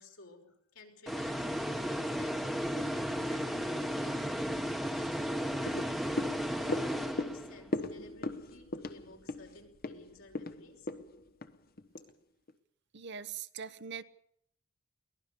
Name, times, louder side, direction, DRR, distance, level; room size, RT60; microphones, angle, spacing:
voice 1, 0.0-4.6 4.9-10.9, left 2 dB, 75° left, 2 dB, 5.4 m, -55 dB
sound 1, 1.1-7.7, equal, ahead, 1.2 m, -34 dB
sound 2, 5.6-12.1 12.5-12.6, left 2 dB, 45° left, 1.2 m, -39 dB
voice 2, 12.9-14.0, right 7 dB, 55° right, 14 dB, 0.9 m, -42 dB
23.0 x 19.0 x 6.8 m, 0.70 s
head